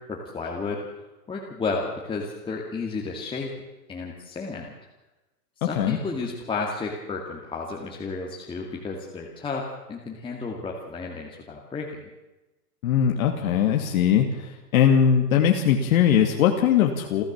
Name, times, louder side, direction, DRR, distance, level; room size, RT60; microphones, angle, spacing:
voice 1, 0.1-1.0 1.3-3.5 3.9-4.8 5.6-12.1, left 4 dB, 10° left, -2 dB, 2.3 m, -32 dB
voice 2, 5.6-6.0 12.8-17.2, left 8 dB, 60° left, 3 dB, 2.5 m, -20 dB
29.5 x 12.5 x 7.4 m, 1.1 s
hypercardioid pair, 150°, 48 cm